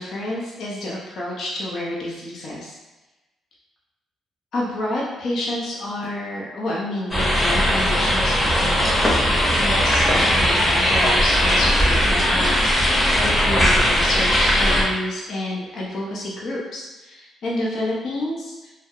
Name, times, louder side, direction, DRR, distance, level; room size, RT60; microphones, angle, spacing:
voice 1, 0.0-2.8 4.5-18.5, left 1 dB, 65° left, -5 dB, 0.6 m, -29 dB
sound 1, 7.1-14.8, equal, 10° left, 0.7 m, -19 dB
2.3 x 2.0 x 2.8 m, 1.1 s
cardioid pair, 90°, 0 cm